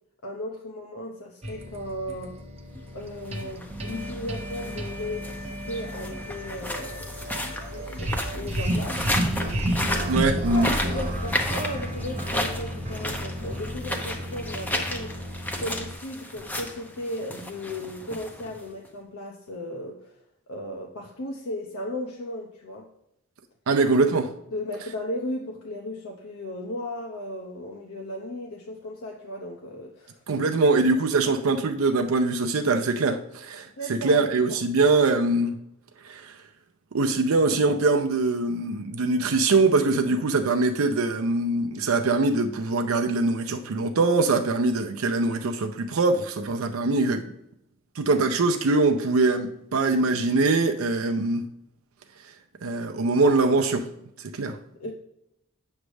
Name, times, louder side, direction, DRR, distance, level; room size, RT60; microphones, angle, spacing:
voice 1, 0.2-2.3 2.9-7.3 7.7-9.1 10.5-15.2 15.6-20.1 20.5-22.9 24.5-30.5 33.8-34.2 34.5-34.6 54.7-54.9, left 1 dB, 80° left, 0.8 m, -36 dB
sound 1, 1.4-15.9, equal, 30° right, 0.8 m, -32 dB
sound 2, 3.1-18.9, left 1 dB, 10° left, 0.7 m, -34 dB
voice 2, 10.1-10.7 23.7-24.3 30.3-35.5 36.0-36.3 36.9-47.2 48.0-51.5 52.6-53.9 54.3-54.6, right 3 dB, 70° right, 0.5 m, -23 dB
8.1 x 3.3 x 6.2 m
head